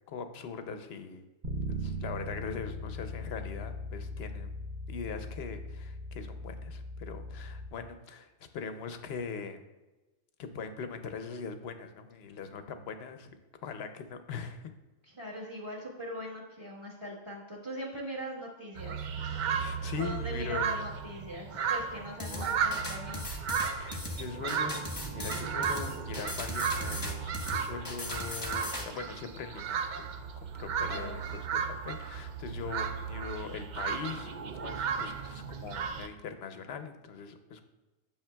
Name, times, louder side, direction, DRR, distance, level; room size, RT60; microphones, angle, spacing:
voice 1, 0.1-1.2 1.7-4.5 4.9-9.6 10.4-13.3 13.6-14.6 19.6-20.8 23.7-37.6, left 5 dB, 65° left, 8 dB, 0.8 m, -41 dB
Bass guitar, 1.4-7.7, left 1 dB, 45° right, 0.8 m, -39 dB
voice 2, 15.0-19.0 20.0-23.4 30.9-31.2, equal, 25° right, -3 dB, 1.2 m, -41 dB
canada geese, 18.8-36.1, right 6 dB, 65° right, 0.4 m, -35 dB
sound 1, 22.2-28.9, left 2 dB, 20° left, 0.9 m, -38 dB
8.7 x 6.3 x 2.2 m, 1.1 s
omnidirectional pair, 1.3 m